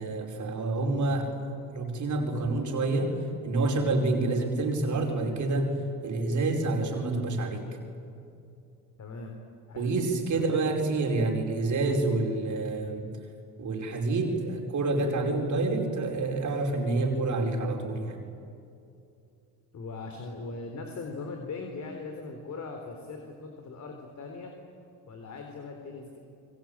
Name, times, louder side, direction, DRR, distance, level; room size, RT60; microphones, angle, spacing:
voice 1, 0.0-1.4 1.7-3.2 3.4-5.8 6.0-7.7 9.8-13.1 13.6-18.2, right 2 dB, 50° right, 2 dB, 5.1 m, -28 dB
voice 2, 9.0-9.4 9.7-9.9 10.3-10.5 19.7-24.5 25.1-26.2, left 3 dB, 45° left, 3 dB, 4.0 m, -40 dB
28.5 x 23.0 x 9.0 m, 2.5 s
supercardioid pair, 85°, 37 cm